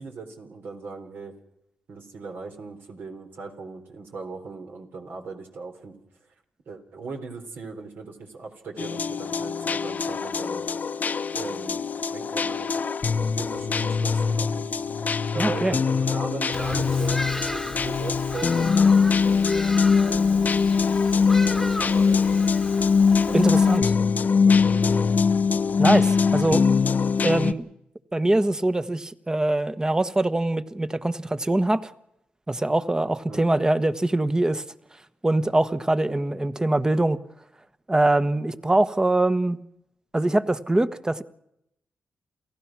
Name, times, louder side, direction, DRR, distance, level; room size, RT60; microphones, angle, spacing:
voice 1, 0.0-1.3 1.9-6.0 6.7-10.7 11.3-11.8 12.1-12.9 13.1-18.9 20.0-20.5 21.1-22.6 23.3-23.5 24.5-25.1 33.3-33.5, right 4 dB, 70° right, 3.9 m, -38 dB
sound 1, 8.8-27.5, left 5 dB, 50° left, 0.9 m, -22 dB
voice 2, 15.4-15.8 23.3-23.8 25.8-26.6 27.2-27.7 28.1-31.9 32.5-34.6 35.2-37.2 37.9-39.6 40.1-41.2, right 2 dB, 20° right, 1.2 m, -23 dB
Bird vocalization bird call bird song, 16.5-23.8, left 1 dB, 5° left, 1.4 m, -36 dB
28.5 x 16.0 x 6.1 m
cardioid pair, 60°, 4 cm